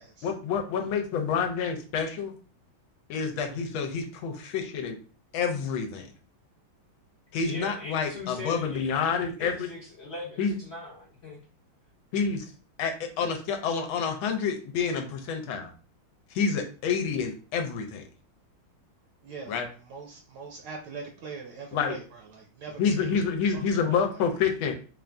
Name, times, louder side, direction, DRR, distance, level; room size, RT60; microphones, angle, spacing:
voice 1, 0.2-2.3 3.1-5.0 5.3-6.1 7.3-9.7 10.4-10.6 12.1-12.4 12.8-15.7 16.3-18.0 19.5-19.7 21.7-22.0 22.8-24.8, left 6 dB, 80° left, 4 dB, 1.4 m, -28 dB
voice 2, 7.4-8.9 9.4-11.4, left 3 dB, 50° left, -4 dB, 0.8 m, -40 dB
voice 3, 19.2-19.5 19.9-22.0 22.3-23.1 23.4-24.0, right 4 dB, 70° right, 0 dB, 1.2 m, -42 dB
4.0 x 2.5 x 3.3 m, 0.39 s
omnidirectional pair, 2.2 m